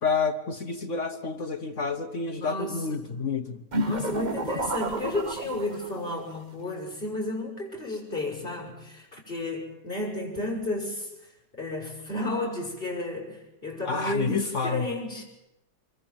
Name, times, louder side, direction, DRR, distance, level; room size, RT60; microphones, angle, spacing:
voice 1, 0.0-3.6 13.9-14.9, left 4 dB, 50° left, 9 dB, 1.3 m, -29 dB
voice 2, 2.3-3.0 3.8-11.3 11.6-15.2, left 2 dB, 30° left, 0 dB, 6.3 m, -32 dB
sound 1, 3.7-6.1, right 2 dB, 30° right, 1.2 m, -30 dB
25.5 x 22.0 x 7.5 m, 0.94 s
omnidirectional pair, 1.8 m